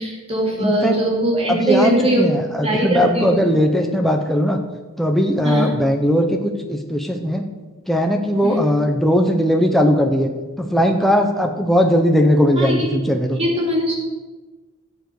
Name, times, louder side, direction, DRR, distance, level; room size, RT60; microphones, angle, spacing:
voice 1, 0.0-3.5 5.4-5.7 8.4-8.6 12.6-12.9 13.3-14.0, right 1 dB, 25° right, -3 dB, 3.2 m, -21 dB
voice 2, 0.6-1.0 1.5-4.6 5.0-7.4 7.9-10.3 10.6-13.4, equal, ahead, 3 dB, 0.8 m, -18 dB
16.5 x 6.9 x 4.7 m, 1.3 s
head